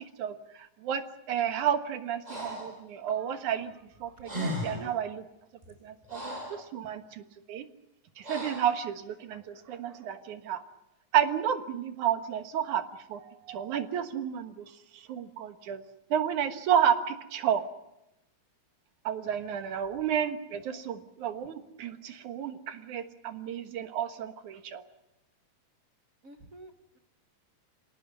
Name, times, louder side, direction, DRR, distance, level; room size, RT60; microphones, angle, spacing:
voice 1, 0.0-3.7 4.0-5.2 5.8-7.2 7.5-7.7 8.2-10.6 11.1-12.8 13.1-14.6 14.9-15.8 16.1-17.6 19.0-24.8, right 9 dB, 80° right, 8 dB, 2.9 m, -31 dB
Breathing, 2.2-2.8 3.9-4.0 4.2-4.9 5.6-6.6 8.2-8.8, equal, 10° right, 6.3 m, -36 dB
voice 2, 4.3-4.9 26.2-27.0, right 1 dB, 45° right, 6 dB, 1.2 m, -47 dB
26.5 x 18.0 x 9.6 m, 0.89 s
omnidirectional pair, 3.4 m